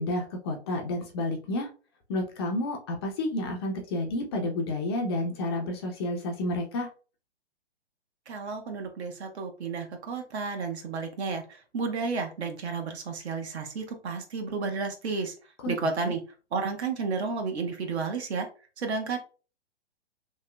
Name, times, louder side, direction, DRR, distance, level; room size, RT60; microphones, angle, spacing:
voice 1, 0.0-1.7 2.1-6.9 15.6-15.7, left 1 dB, 25° left, 2 dB, 0.4 m, -30 dB
voice 2, 8.3-11.4 11.7-15.3 15.7-16.2 16.5-18.5 18.8-19.2, right 4 dB, 70° right, 4 dB, 1.0 m, -32 dB
3.0 x 2.9 x 2.2 m, 0.35 s
hypercardioid pair, 135°, 34 cm